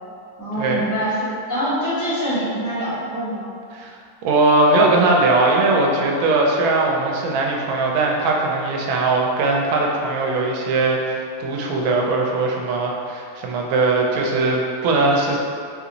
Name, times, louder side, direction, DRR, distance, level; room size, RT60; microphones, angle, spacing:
voice 1, 0.4-3.5, equal, 15° left, -12 dB, 0.6 m, -24 dB
voice 2, 4.2-15.4, right 2 dB, 80° right, -1 dB, 1.3 m, -19 dB
3.9 x 2.5 x 2.9 m, 2.3 s
omnidirectional pair, 2.1 m